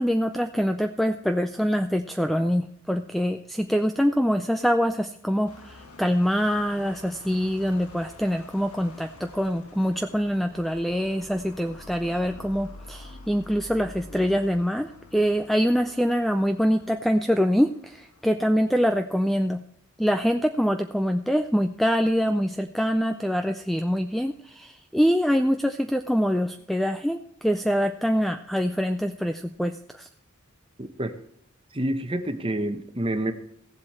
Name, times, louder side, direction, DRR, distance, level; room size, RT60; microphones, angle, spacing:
voice 1, 0.0-19.6 20.0-30.1, equal, ahead, 7 dB, 0.3 m, -24 dB
sound 1, 5.5-18.2, left 2 dB, 85° left, 1.6 m, -47 dB
voice 2, 30.8-31.2 31.7-33.3, right 1 dB, 25° right, 8 dB, 0.9 m, -28 dB
16.0 x 7.6 x 4.3 m, 0.75 s
head